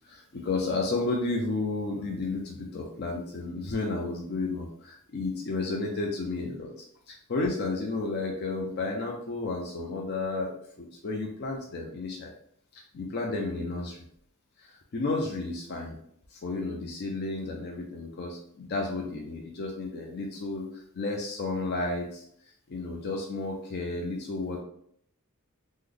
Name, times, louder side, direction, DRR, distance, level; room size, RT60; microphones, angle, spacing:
voice 1, 0.1-6.7 7.1-12.3 12.9-14.0 14.6-16.0 16.3-20.7 20.9-22.2 22.7-24.6, left 3 dB, 50° left, 0 dB, 0.5 m, -32 dB
3.2 x 2.1 x 3.7 m, 0.67 s
head